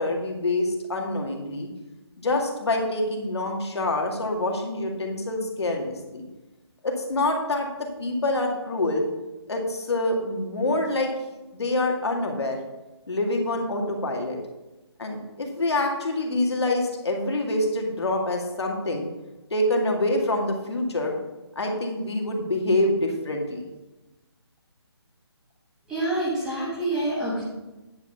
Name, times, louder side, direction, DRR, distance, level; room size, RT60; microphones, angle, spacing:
voice 1, 0.0-1.7 2.2-6.2 6.8-7.7 8.0-9.0 9.5-11.1 11.5-12.6 13.1-14.4 15.0-19.1 19.5-21.1 21.6-23.6, left 2 dB, 75° left, 1 dB, 2.1 m, -26 dB
voice 2, 25.9-27.4, right 1 dB, 5° right, -8 dB, 1.2 m, -27 dB
9.6 x 5.6 x 5.4 m, 1.1 s
hypercardioid pair, 175°, 14 cm